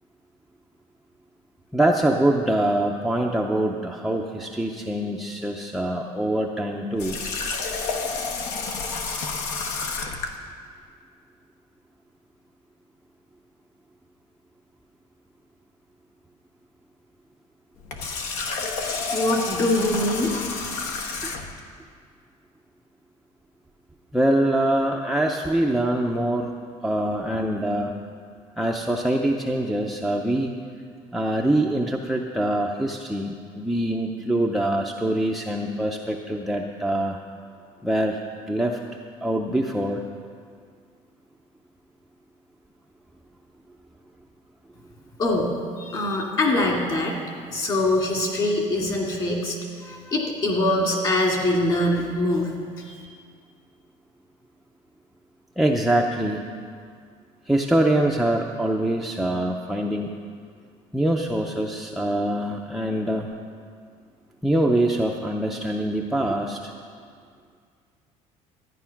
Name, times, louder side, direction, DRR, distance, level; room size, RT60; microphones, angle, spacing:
voice 1, 1.7-7.2 21.2-21.3 24.1-26.5 26.8-27.9 28.6-30.5 31.1-37.2 37.8-38.2 38.5-38.8 39.2-40.0 55.6-56.5 57.5-60.1 60.9-63.3 64.4-66.7, right 1 dB, ahead, 1 dB, 0.5 m, -24 dB
Water tap faucet, 7.0-10.4 17.8-21.6, left 4 dB, 75° left, 1.1 m, -30 dB
voice 2, 19.1-20.4 45.2-47.2 47.5-53.0, left 1 dB, 35° left, 0 dB, 2.2 m, -24 dB
13.5 x 9.7 x 5.7 m, 2.1 s
cardioid pair, 175°, 13 cm